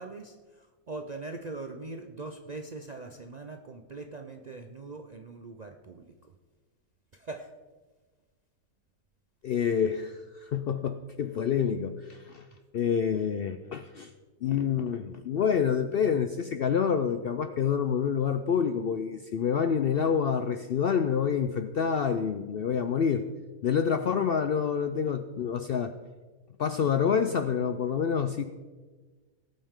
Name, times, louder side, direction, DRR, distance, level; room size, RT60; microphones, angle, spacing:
voice 1, 0.0-6.3 7.1-7.5, right 3 dB, 55° right, 4 dB, 0.4 m, -41 dB
voice 2, 9.4-12.5 12.7-14.1 14.4-23.2 23.6-25.9 26.6-28.4, left 7 dB, 75° left, 9 dB, 0.5 m, -27 dB
19.0 x 8.8 x 3.6 m, 1.3 s
omnidirectional pair, 1.6 m